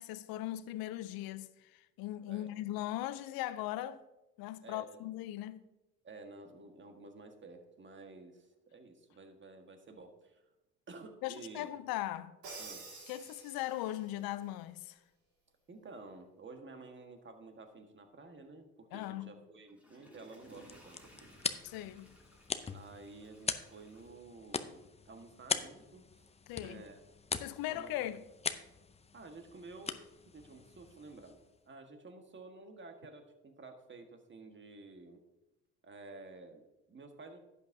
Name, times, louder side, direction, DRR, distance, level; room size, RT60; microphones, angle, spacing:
voice 1, 0.0-4.0 4.4-5.6 11.2-12.4 13.1-15.0 18.9-19.3 21.6-22.1 26.5-26.8 27.4-28.2, left 14 dB, 70° left, 0.7 m, -39 dB
voice 2, 4.6-5.0 6.0-10.5 10.9-11.7 12.6-12.8 15.7-21.3 22.7-26.3 26.5-27.0 27.7-28.0 29.1-30.0 30.2-31.4 31.6-35.2 35.8-37.4, right 3 dB, 30° right, 1.6 m, -52 dB
Crash cymbal, 12.4-14.1, right 3 dB, 70° right, 3.5 m, -49 dB
Water / Toilet flush, 19.5-24.8 25.3-25.4, equal, 5° right, 3.0 m, -61 dB
sound 1, 20.4-31.6, left 5 dB, 15° left, 0.6 m, -42 dB
11.5 x 8.5 x 2.8 m
supercardioid pair, 70°, 37 cm